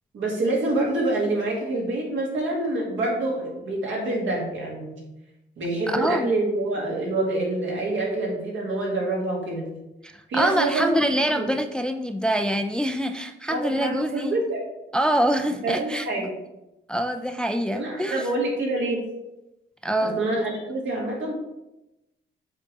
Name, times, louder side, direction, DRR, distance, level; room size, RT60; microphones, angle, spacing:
voice 1, 0.1-5.0 5.6-9.7 10.3-10.9 11.2-11.5 13.5-14.6 15.5-16.3 17.7-19.0 20.0-21.3, right 2 dB, 75° right, -2 dB, 2.1 m, -26 dB
voice 2, 5.9-6.3 10.0-14.4 14.9-16.3 16.9-18.2 19.8-20.2, right 1 dB, 5° left, 6 dB, 0.3 m, -25 dB
7.2 x 3.5 x 4.0 m, 0.94 s
cardioid pair, 90°, 20 cm